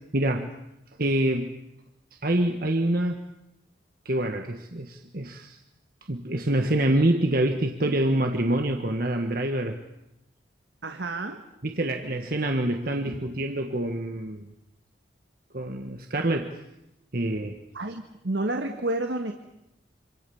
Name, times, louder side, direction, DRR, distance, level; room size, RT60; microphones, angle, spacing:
voice 1, 0.1-0.5 1.0-1.5 2.2-3.2 4.0-5.6 6.1-9.8 11.6-14.5 15.5-16.6 17.1-17.6, right 1 dB, 50° right, 5 dB, 1.5 m, -26 dB
voice 2, 10.8-11.4 17.7-19.3, right 2 dB, 75° right, 5 dB, 1.8 m, -30 dB
26.5 x 26.0 x 7.2 m, 0.89 s
head